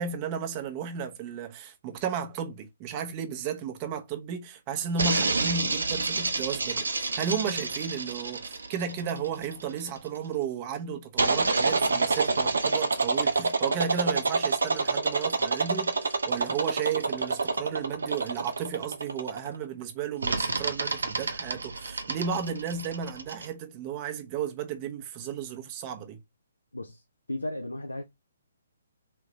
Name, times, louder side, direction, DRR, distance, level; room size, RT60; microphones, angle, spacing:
voice 1, 0.0-26.2, right 7 dB, 30° right, 0.9 m, -34 dB
sound 1, 5.0-9.9 11.2-19.6 20.2-23.5, right 3 dB, 75° right, 0.8 m, -28 dB
voice 2, 26.7-28.0, left 1 dB, 90° left, 0.7 m, -35 dB
3.8 x 3.3 x 3.1 m
figure-of-eight pair, 135°, 0 cm